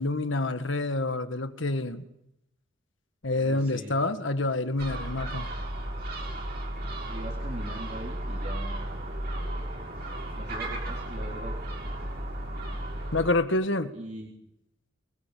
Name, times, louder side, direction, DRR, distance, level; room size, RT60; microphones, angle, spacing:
voice 1, 0.0-2.0 3.2-5.5 13.1-13.9, left 2 dB, 70° left, 9 dB, 1.7 m, -27 dB
voice 2, 3.4-4.0 7.1-8.9 10.4-11.6 13.9-14.4, right 1 dB, 35° right, -2 dB, 3.9 m, -41 dB
Gull seagull, 4.8-13.3, right 1 dB, 55° right, 6.9 m, -34 dB
25.0 x 21.0 x 8.5 m, 0.80 s
head